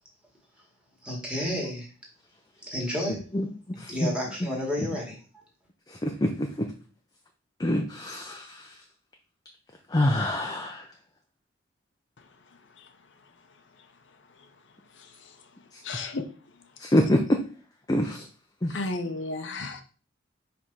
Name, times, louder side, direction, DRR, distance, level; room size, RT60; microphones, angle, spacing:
voice 1, 1.0-1.9 2.6-3.2 3.9-5.2, equal, 5° right, -2 dB, 2.0 m, -31 dB
voice 2, 3.8-4.1 6.0-6.7 7.6-8.7 9.9-10.8 16.8-17.4 17.9-18.2 18.6-18.8, left 1 dB, 20° left, 3 dB, 0.6 m, -25 dB
voice 3, 15.8-16.3 18.7-19.8, left 3 dB, 70° left, 7 dB, 0.7 m, -33 dB
5.1 x 3.5 x 5.5 m, 0.38 s
head